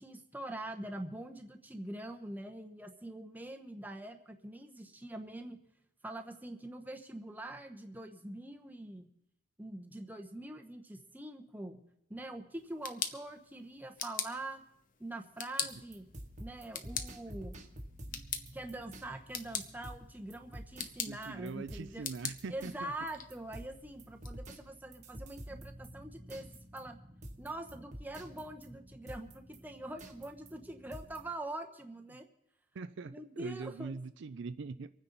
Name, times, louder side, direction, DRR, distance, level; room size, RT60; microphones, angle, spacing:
voice 1, 0.0-5.6 6.0-9.1 9.6-11.8 12.1-14.6 15.0-16.1 16.4-17.6 18.5-22.1 22.5-26.5 26.7-27.0 27.4-32.3 33.0-34.0, right 1 dB, 10° right, 0.9 m, -44 dB
sound 1, 12.5-24.3, left 7 dB, 40° left, 0.9 m, -43 dB
sound 2, 15.6-31.3, right 1 dB, 35° right, 1.2 m, -50 dB
voice 2, 21.1-22.9 32.7-34.9, right 4 dB, 55° right, 0.4 m, -42 dB
25.0 x 9.7 x 4.0 m
head